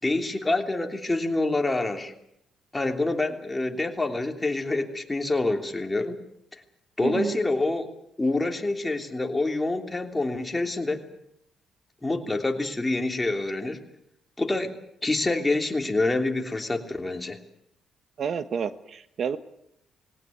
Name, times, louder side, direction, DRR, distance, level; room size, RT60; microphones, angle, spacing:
voice 1, 0.0-2.1 2.7-6.2 7.0-7.9 8.2-11.0 12.0-13.8 14.4-14.7 15.0-17.4, left 2 dB, 15° left, 4 dB, 3.1 m, -26 dB
voice 2, 7.0-7.4 18.2-19.4, right 7 dB, 55° right, 12 dB, 1.3 m, -29 dB
20.5 x 18.0 x 9.4 m, 0.75 s
cardioid pair, 90°, 0 cm